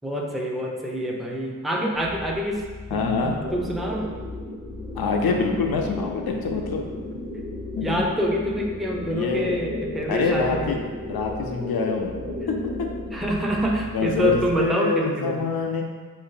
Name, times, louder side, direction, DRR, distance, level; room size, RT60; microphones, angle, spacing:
voice 1, 0.0-2.6 2.9-4.1 7.8-10.7 13.1-15.3, equal, ahead, -1 dB, 0.5 m, -26 dB
sound 1, 1.9-14.7, left 3 dB, 80° right, 0.9 m, -40 dB
voice 2, 2.9-3.4 4.9-6.9 7.7-8.1 9.1-9.6 10.1-12.2 12.5-12.9 13.9-15.8, left 4 dB, 85° left, 2 dB, 0.5 m, -25 dB
sound 2, 3.2-13.2, left 1 dB, 15° right, 0.9 m, -35 dB
4.4 x 2.6 x 3.8 m, 1.5 s
wide cardioid pair, 65°, 36 cm